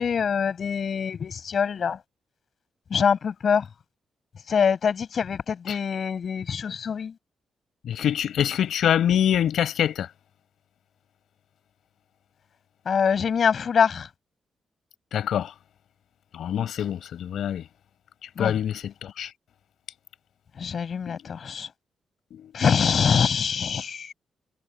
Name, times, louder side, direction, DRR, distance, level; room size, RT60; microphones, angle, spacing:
voice 1, 0.0-2.0 2.9-3.6 4.5-7.1 12.9-14.1 18.4-18.5 20.6-21.7 22.5-24.1, left 6 dB, 45° left, 6.5 m, -24 dB
voice 2, 7.9-10.1 15.1-15.5 16.4-17.6 18.4-19.3 22.3-22.5, left 10 dB, 75° left, 5.8 m, -25 dB
wide cardioid pair, 165°, 0 cm